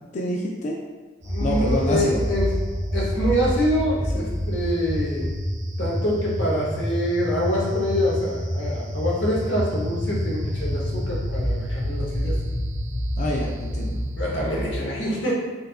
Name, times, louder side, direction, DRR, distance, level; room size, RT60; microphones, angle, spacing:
voice 1, 0.1-0.8 1.4-2.2 13.2-14.0, left 1 dB, 40° left, -2 dB, 0.3 m, -26 dB
voice 2, 1.2-2.5 2.9-5.2 5.8-12.3 14.2-15.3, equal, 90° left, -4 dB, 1.0 m, -25 dB
sound 1, 1.2-14.8, equal, 85° right, 1.0 m, -27 dB
4.3 x 2.4 x 2.4 m, 1.4 s
head